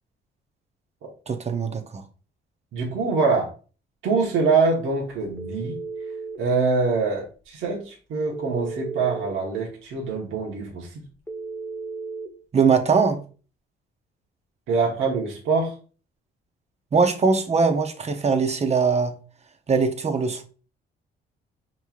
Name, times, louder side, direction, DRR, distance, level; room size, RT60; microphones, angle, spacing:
voice 1, 1.3-2.0 12.5-13.2 16.9-19.1 19.7-20.4, right 5 dB, 35° right, 0.8 m, -21 dB
voice 2, 2.7-3.5 4.0-5.8 6.4-11.0 14.7-15.7, right 4 dB, 80° right, 1.2 m, -24 dB
Telephone, 5.4-6.4 8.3-9.3 11.3-12.3, right 4 dB, 10° left, 0.9 m, -34 dB
5.4 x 3.1 x 2.4 m
cardioid pair, 90°, 20 cm